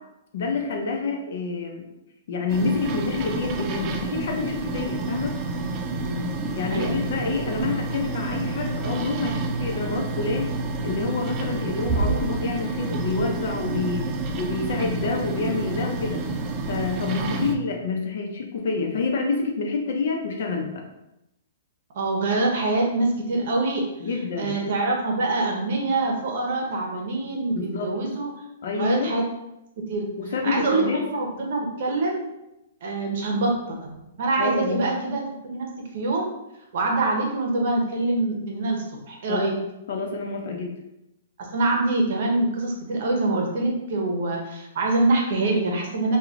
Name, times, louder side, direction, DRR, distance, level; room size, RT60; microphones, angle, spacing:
voice 1, 0.3-1.9 2.3-5.3 6.5-10.5 10.8-14.1 14.3-16.2 16.7-20.8 24.0-24.6 27.5-28.0 28.6-29.1 30.2-31.0 34.4-34.9 39.3-39.5 39.9-40.7, left 4 dB, 60° left, 2 dB, 0.7 m, -28 dB
sound 1, 2.5-17.5, right 3 dB, 25° right, 0.4 m, -29 dB
voice 2, 6.0-6.4 6.7-7.0 17.2-17.4 21.9-23.8 24.4-28.3 28.7-29.2 29.8-30.1 30.4-32.3 32.8-35.7 35.9-36.3 36.7-39.5 41.4-46.2, right 2 dB, 55° right, 0 dB, 0.9 m, -25 dB
3.2 x 2.4 x 3.7 m, 0.89 s
hypercardioid pair, 155°, 0 cm